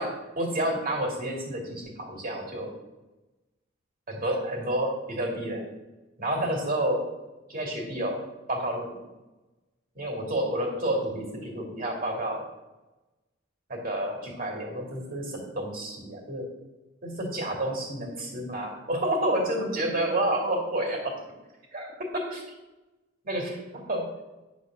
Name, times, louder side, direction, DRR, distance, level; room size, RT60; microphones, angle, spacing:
voice 1, 0.4-2.7 4.1-5.6 6.2-7.0 7.5-8.2 8.5-8.9 9.9-12.4 13.7-16.4 17.0-21.1 21.7-22.4 23.2-24.0, right 1 dB, 45° right, 1 dB, 2.5 m, -29 dB
10.0 x 4.1 x 7.4 m, 1.1 s
head